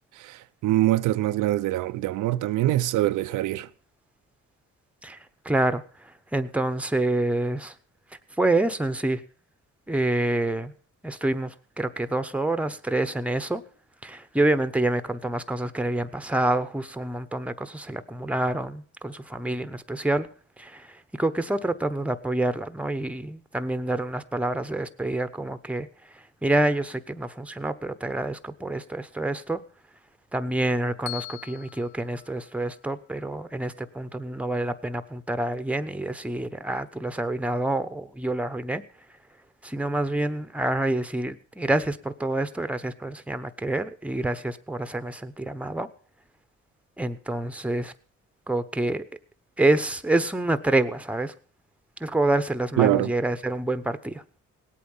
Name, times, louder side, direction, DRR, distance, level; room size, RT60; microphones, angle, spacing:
voice 1, 0.2-3.7 52.8-53.1, right 15 dB, 85° right, 0.6 m, -24 dB
voice 2, 5.4-7.7 8.4-9.2 9.9-10.7 11.0-13.6 14.0-20.3 20.6-25.9 26.1-29.6 30.3-38.8 39.6-45.9 47.0-47.9 48.5-49.0 49.6-51.3 52.0-54.2, right 2 dB, 5° right, 0.9 m, -27 dB
Bell, 31.1-33.2, left 23 dB, 85° left, 0.6 m, -42 dB
18.0 x 8.5 x 5.5 m
cardioid pair, 90°, 30 cm